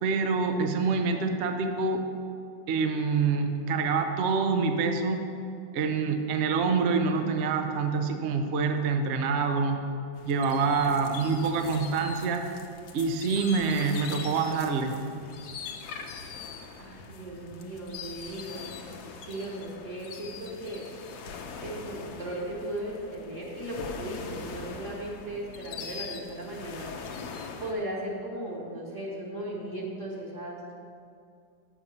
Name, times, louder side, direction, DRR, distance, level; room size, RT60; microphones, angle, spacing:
voice 1, 0.0-2.0 2.7-5.3 5.7-9.8 10.2-12.5 12.9-15.0, right 4 dB, 75° right, 6 dB, 0.6 m, -26 dB
sound 1, 10.2-27.7, left 5 dB, 70° left, 1.1 m, -42 dB
voice 2, 16.8-18.9 19.2-20.9 21.6-26.9 27.6-30.6, right 1 dB, 45° right, -3 dB, 1.4 m, -37 dB
6.6 x 5.8 x 7.1 m, 2.4 s
omnidirectional pair, 2.0 m